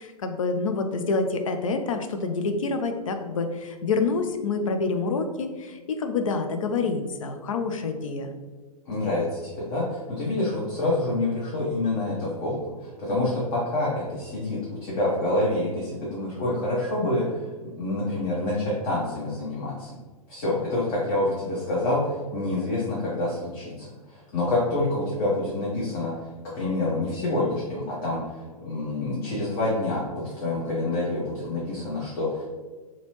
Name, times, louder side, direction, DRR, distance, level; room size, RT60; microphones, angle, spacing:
voice 1, 0.0-8.3, left 4 dB, 60° left, 6 dB, 0.5 m, -27 dB
voice 2, 8.9-20.0 20.3-32.4, left 2 dB, 35° left, -6 dB, 0.9 m, -27 dB
4.0 x 2.8 x 3.0 m, 1.3 s
figure-of-eight pair, 110°, 19 cm